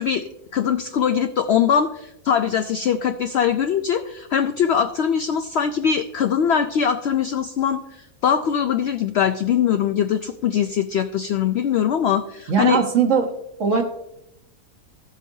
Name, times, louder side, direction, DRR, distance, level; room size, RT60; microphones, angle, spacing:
voice 1, 0.0-7.8 8.2-12.8, left 8 dB, 70° left, 8 dB, 0.6 m, -22 dB
voice 2, 12.5-13.3 13.6-13.8, right 6 dB, 60° right, 3 dB, 1.4 m, -19 dB
14.5 x 7.5 x 2.7 m, 0.83 s
omnidirectional pair, 1.6 m